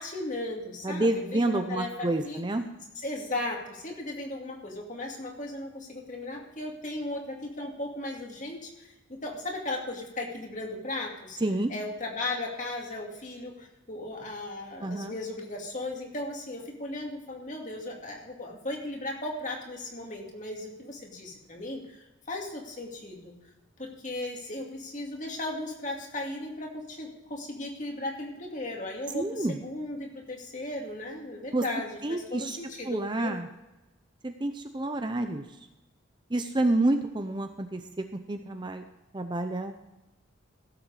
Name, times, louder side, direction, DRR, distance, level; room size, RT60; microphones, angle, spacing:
voice 1, 0.0-2.4 3.0-11.4 11.7-23.3 23.8-33.3, left 2 dB, 35° left, 0 dB, 2.4 m, -36 dB
voice 2, 0.8-2.6 11.4-11.7 14.8-15.2 29.1-29.6 31.5-31.7 32.0-32.6 32.9-33.5 34.2-35.4 36.3-38.8 39.1-39.7, right 2 dB, 20° right, 7 dB, 0.6 m, -29 dB
16.5 x 7.9 x 4.9 m, 1.0 s
head